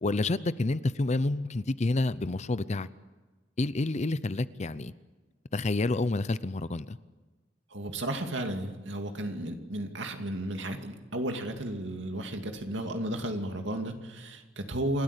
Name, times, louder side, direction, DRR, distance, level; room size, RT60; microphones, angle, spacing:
voice 1, 0.0-2.9 3.6-4.9 5.5-7.0, left 2 dB, 35° left, 16 dB, 0.6 m, -29 dB
voice 2, 7.7-15.0, right 1 dB, 70° right, 5 dB, 2.5 m, -33 dB
27.5 x 13.0 x 8.3 m, 1.3 s
head